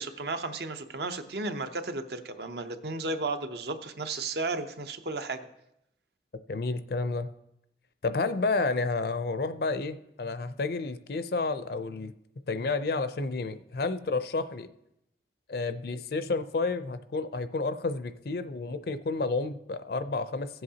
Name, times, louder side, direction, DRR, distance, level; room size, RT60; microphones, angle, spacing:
voice 1, 0.0-5.5, right 3 dB, 65° right, 8 dB, 0.7 m, -34 dB
voice 2, 6.5-7.3 8.0-12.1 12.5-14.7 15.5-20.6, left 3 dB, 60° left, 11 dB, 0.5 m, -30 dB
16.0 x 7.8 x 2.8 m, 0.82 s
head